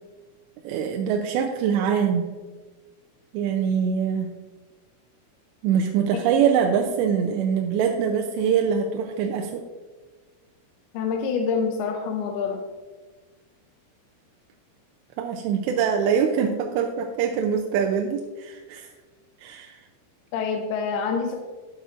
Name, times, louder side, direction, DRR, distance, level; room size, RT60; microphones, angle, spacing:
voice 1, 0.6-2.2 3.3-4.3 5.6-9.7 15.2-18.9 19.4-19.8, right 7 dB, 85° right, 2 dB, 2.8 m, -23 dB
voice 2, 10.9-12.6 20.3-21.4, left 5 dB, 80° left, 2 dB, 2.5 m, -26 dB
12.0 x 9.3 x 2.5 m, 1.3 s
omnidirectional pair, 4.9 m